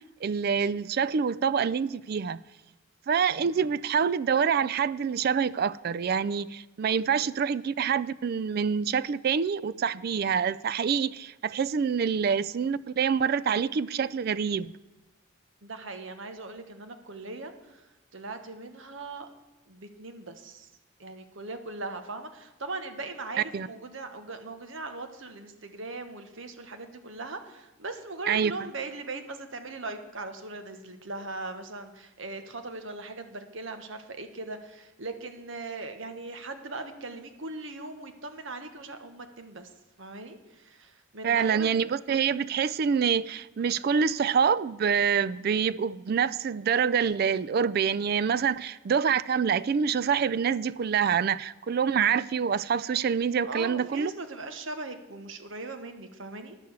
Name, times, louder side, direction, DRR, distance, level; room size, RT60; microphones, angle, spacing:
voice 1, 0.2-2.4 3.1-14.7 23.5-23.7 28.3-28.5 41.2-54.1, right 6 dB, 45° right, 0.3 m, -26 dB
voice 2, 15.6-19.3 19.7-20.7 21.0-39.7 40.0-41.7 53.4-56.6, right 3 dB, 60° right, 1.2 m, -39 dB
10.5 x 6.7 x 7.9 m
head